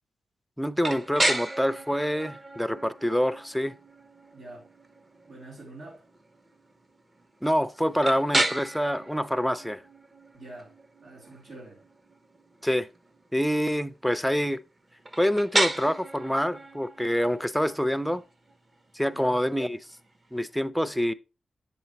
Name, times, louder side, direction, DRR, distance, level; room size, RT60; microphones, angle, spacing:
voice 1, 0.6-3.8 7.4-9.8 12.6-12.9 13.3-14.6 15.2-18.2 18.9-20.0 20.3-21.1, equal, ahead, 0.6 m, -26 dB
sound 1, 0.8-20.6, right 1 dB, 30° right, 1.1 m, -34 dB
voice 2, 4.3-4.7 5.3-6.1 10.3-10.7 11.0-11.8 19.1-19.4, right 2 dB, 75° right, 3.4 m, -45 dB
7.6 x 6.8 x 3.0 m
cardioid pair, 65°, 0 cm